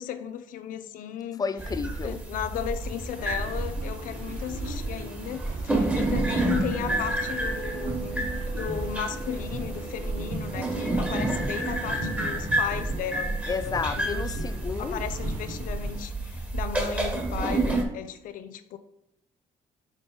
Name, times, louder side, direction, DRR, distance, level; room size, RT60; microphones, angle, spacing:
voice 1, 0.0-1.5 2.0-14.4 14.8-18.8, left 9 dB, 75° left, 11 dB, 0.5 m, -35 dB
voice 2, 1.4-2.2 13.5-15.1, left 5 dB, 25° left, 14 dB, 0.4 m, -31 dB
sound 1, 1.6-17.8, right 2 dB, 10° right, 1.4 m, -30 dB
sound 2, 2.8-16.0, right 2 dB, 90° right, 1.3 m, -40 dB
6.3 x 3.8 x 4.9 m, 0.79 s
cardioid pair, 105°, 14 cm